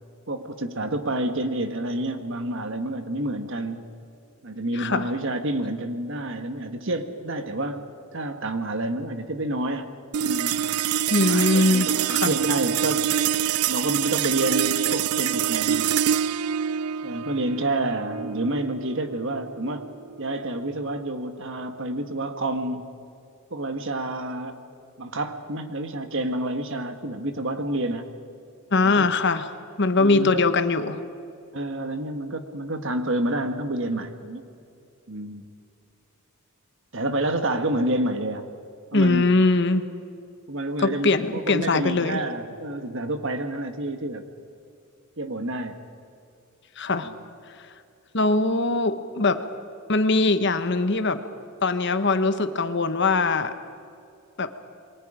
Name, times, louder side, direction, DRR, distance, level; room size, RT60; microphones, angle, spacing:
voice 1, 0.3-3.9 4.4-7.8 8.1-9.9 10.2-10.7 11.3-13.3 13.7-15.9 17.0-19.9 20.2-22.9 23.5-24.6 25.0-28.1 28.8-29.1 30.0-30.4 31.5-34.5 35.1-35.4 36.9-38.5 38.9-39.3 40.5-44.2 45.2-45.8 47.0-47.1, right 1 dB, 60° right, 8 dB, 1.6 m, -29 dB
voice 2, 4.7-5.1 11.1-12.3 28.7-29.5 29.8-31.0 38.9-39.9 40.8-42.2 46.8-47.1 48.1-49.4 49.9-51.2 51.6-53.5 54.4-54.5, left 3 dB, 55° left, 10 dB, 1.1 m, -21 dB
sound 1, 10.1-20.7, right 9 dB, 90° right, 0.4 m, -26 dB
27.5 x 23.0 x 5.1 m, 2.5 s
head